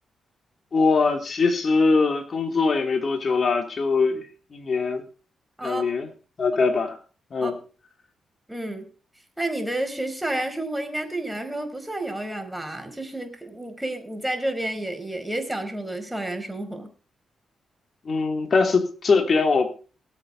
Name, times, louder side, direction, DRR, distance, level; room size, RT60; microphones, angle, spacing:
voice 1, 0.7-4.2 4.5-5.0 5.6-6.1 6.4-7.0 7.3-7.5 18.0-19.7, left 4 dB, 55° left, 5 dB, 3.2 m, -22 dB
voice 2, 8.5-8.9 9.4-16.9, right 1 dB, 10° right, 6 dB, 4.7 m, -30 dB
19.0 x 8.3 x 4.2 m, 0.36 s
hypercardioid pair, 40°, 0 cm